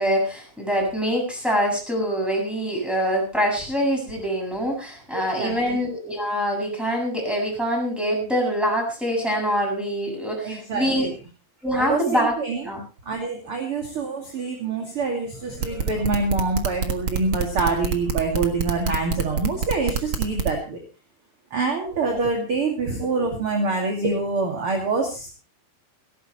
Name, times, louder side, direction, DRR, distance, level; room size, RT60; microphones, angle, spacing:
voice 1, 0.0-11.1 11.6-12.3 12.6-12.8, equal, ahead, 0 dB, 7.2 m, -24 dB
voice 2, 5.1-5.8 10.4-11.1 11.7-12.6 13.1-20.8 21.5-25.3, right 3 dB, 35° right, 2 dB, 2.8 m, -26 dB
sound 1, 15.5-20.5, right 6 dB, 90° right, 1.1 m, -26 dB
17.5 x 17.0 x 3.2 m, 0.31 s
omnidirectional pair, 5.0 m